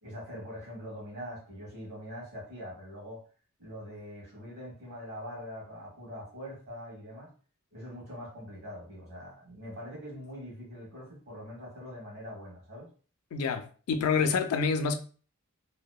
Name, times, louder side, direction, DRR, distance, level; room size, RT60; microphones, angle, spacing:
voice 1, 0.0-3.2 3.6-7.3 7.7-12.9, equal, 45° right, 1.3 m, -43 dB
voice 2, 13.3-15.0, left 5 dB, 85° left, 0.4 m, -27 dB
2.7 x 2.1 x 2.3 m
head